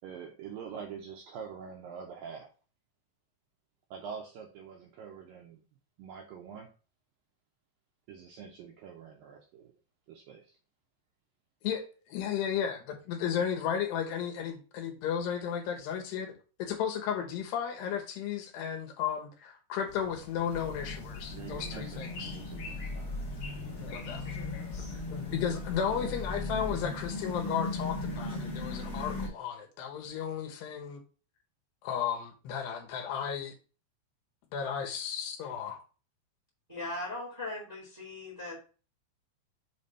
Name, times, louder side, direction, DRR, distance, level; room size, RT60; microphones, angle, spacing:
voice 1, 0.0-2.5 3.9-5.6 6.0-6.7 8.1-9.7 10.1-10.5 21.3-23.4, right 7 dB, 75° right, 1 dB, 2.1 m, -45 dB
voice 2, 11.6-16.3 16.6-22.3 23.8-24.2 25.1-31.0 31.8-33.5 34.5-35.8, left 8 dB, 75° left, 3 dB, 3.2 m, -34 dB
sound 1, 19.9-25.8, left 4 dB, 55° left, 2.1 m, -47 dB
sound 2, 20.5-29.3, left 2 dB, 40° left, 1.4 m, -37 dB
voice 3, 36.7-38.6, left 2 dB, 15° right, -3 dB, 1.2 m, -39 dB
7.2 x 3.4 x 5.4 m, 0.36 s
omnidirectional pair, 5.0 m